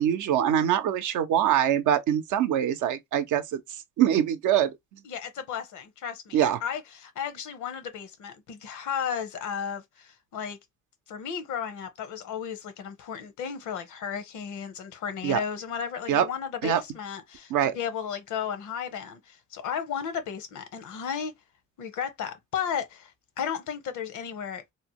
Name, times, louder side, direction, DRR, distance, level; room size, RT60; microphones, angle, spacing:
voice 1, 0.0-3.6 4.0-4.8 6.3-6.6 15.2-15.4 16.1-16.2 16.6-16.8 17.5-17.8, right 10 dB, 80° right, 0.6 m, -23 dB
voice 2, 5.0-10.6 11.1-21.4 21.8-24.6, left 7 dB, 75° left, 0.8 m, -34 dB
2.8 x 2.1 x 2.8 m
cardioid pair, 90°, 30 cm